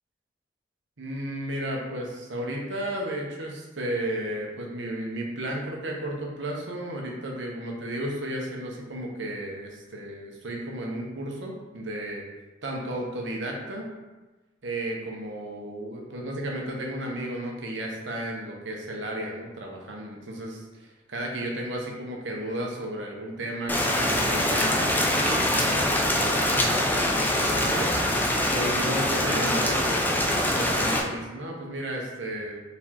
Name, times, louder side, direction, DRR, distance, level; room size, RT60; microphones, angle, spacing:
voice 1, 1.0-12.2 12.6-13.9 14.6-27.9 28.5-32.6, right 1 dB, 85° right, 0 dB, 0.9 m, -33 dB
Rain, 23.7-31.0, left 1 dB, 10° left, 0.4 m, -24 dB
4.2 x 3.4 x 2.9 m, 1.2 s
head